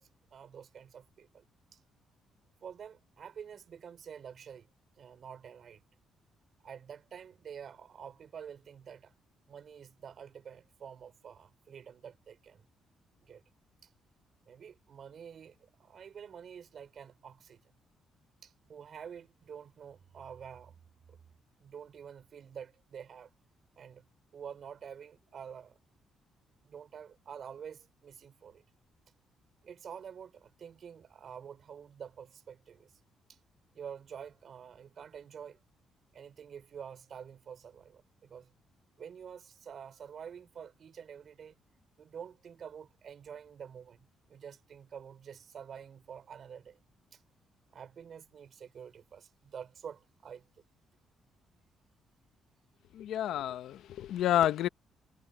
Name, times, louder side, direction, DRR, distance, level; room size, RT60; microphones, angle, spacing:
voice 1, 0.0-1.4 1.7-1.8 2.6-4.7 5.0-5.8 6.6-9.1 9.5-12.6 13.2-13.4 13.8-13.9 14.5-17.6 18.4-20.7 21.1-21.2 21.6-23.3 23.8-24.0 24.3-25.8 26.6-28.6 29.6-32.9 33.3-33.4 33.8-35.6 36.1-38.5 39.0-41.6 42.0-46.8 47.1-47.2 47.7-50.4, right 7 dB, 55° right, 5.3 m, -48 dB
voice 2, 52.9-54.7, left 12 dB, 80° left, 1.0 m, -29 dB
cardioid pair, 90°, 0 cm